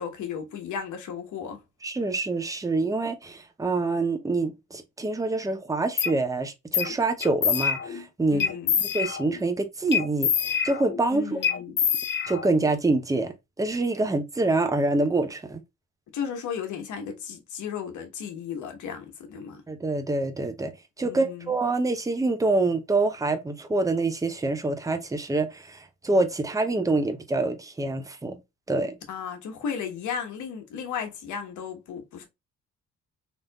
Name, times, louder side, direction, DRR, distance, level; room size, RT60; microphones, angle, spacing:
voice 1, 0.0-1.6 8.3-8.8 11.1-11.8 16.1-19.6 21.0-21.5 29.1-32.3, left 7 dB, 75° left, 1.1 m, -35 dB
voice 2, 1.8-8.4 8.9-11.4 12.3-15.6 19.7-20.7 21.0-28.4 28.7-29.0, right 2 dB, 10° right, 0.6 m, -26 dB
sound 1, 6.0-6.1 6.7-6.9 7.2-8.0 8.4-9.4 9.9-11.1 11.4-12.7, left 7 dB, 40° left, 0.5 m, -26 dB
3.5 x 2.7 x 2.2 m
cardioid pair, 90°, 30 cm